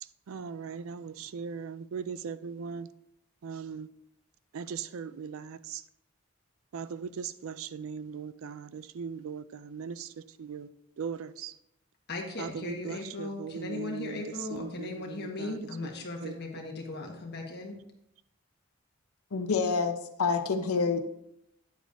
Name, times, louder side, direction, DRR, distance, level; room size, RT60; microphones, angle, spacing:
voice 1, 0.0-2.9 3.4-3.9 4.5-5.8 6.7-10.7 11.0-11.6 12.4-15.6 16.2-16.4, right 6 dB, 70° right, 0.4 m, -39 dB
voice 2, 12.1-17.8, left 2 dB, 50° left, 1.4 m, -38 dB
voice 3, 19.3-21.1, left 4 dB, 90° left, 0.7 m, -28 dB
9.3 x 8.1 x 2.6 m
head